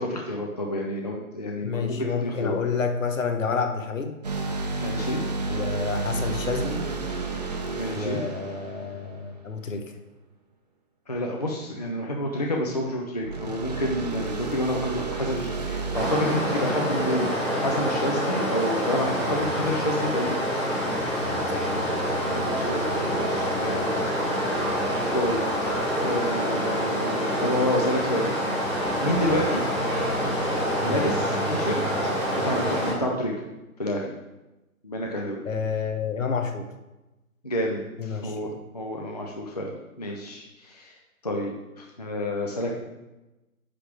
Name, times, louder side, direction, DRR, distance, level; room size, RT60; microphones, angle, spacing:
voice 1, 0.0-2.6 4.8-5.2 7.8-8.2 11.1-20.4 22.3-23.9 25.1-25.7 26.0-28.3 29.0-29.6 30.1-30.2 30.8-31.8 32.3-33.3 33.8-34.1 34.8-35.4 37.4-39.7 40.0-41.0 41.2-42.8, left 1 dB, 30° left, 0 dB, 0.5 m, -29 dB
voice 2, 1.6-4.1 5.5-6.8 7.9-9.8 21.5-21.7 30.8-31.0 35.4-36.7 38.0-38.6, left 5 dB, 60° left, 5 dB, 1.3 m, -29 dB
sound 1, 4.2-9.7 13.2-18.0, right 3 dB, 30° right, 0.7 m, -32 dB
Stream, 15.9-32.9, equal, 5° left, 1.0 m, -26 dB
9.8 x 3.5 x 6.0 m, 1.0 s
hypercardioid pair, 165°, 44 cm